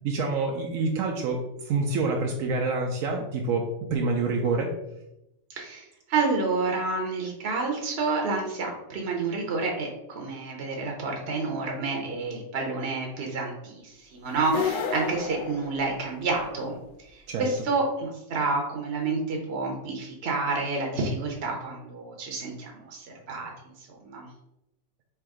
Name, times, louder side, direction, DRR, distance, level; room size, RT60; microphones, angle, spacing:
voice 1, 0.0-4.7 17.3-17.5, right 3 dB, 85° right, 0 dB, 1.0 m, -27 dB
voice 2, 5.5-16.8 17.1-23.5 24.0-24.3, right 3 dB, 55° right, 1 dB, 0.9 m, -29 dB
sound 1, 14.4-16.4, left 6 dB, 65° left, 0.5 m, -31 dB
3.5 x 2.8 x 4.7 m, 0.89 s
omnidirectional pair, 1.4 m